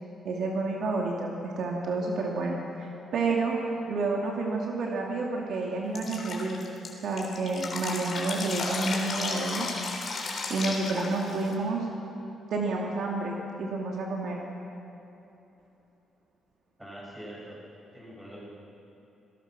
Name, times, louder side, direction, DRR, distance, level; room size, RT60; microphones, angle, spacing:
voice 1, 0.2-3.6 3.9-6.6 7.0-9.7 10.5-11.9 12.5-14.4, right 3 dB, 60° right, -1 dB, 2.6 m, -30 dB
Drip, 5.9-11.5, left 3 dB, 40° left, 3.5 m, -34 dB
voice 2, 16.8-17.6 17.9-18.6, right 1 dB, 5° right, -5 dB, 7.3 m, -43 dB
28.0 x 19.0 x 6.3 m, 3.0 s
cardioid pair, 150°, 0 cm